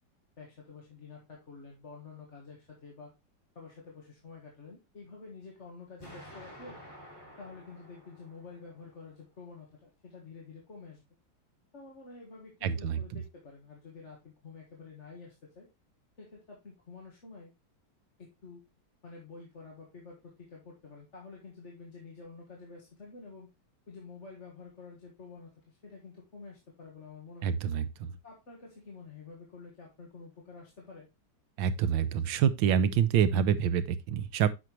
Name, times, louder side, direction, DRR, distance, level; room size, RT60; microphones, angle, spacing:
voice 1, 0.4-3.1 3.5-6.8 7.4-11.0 11.7-15.7 16.2-17.5 18.2-18.6 19.0-23.5 23.9-27.5 28.2-31.1, left 4 dB, 40° left, 1.8 m, -49 dB
Explosion, 6.0-9.0, equal, 10° left, 2.6 m, -51 dB
voice 2, 12.6-13.0 27.4-28.1 31.6-34.5, right 8 dB, 85° right, 1.4 m, -27 dB
8.3 x 6.0 x 3.0 m
omnidirectional pair, 2.0 m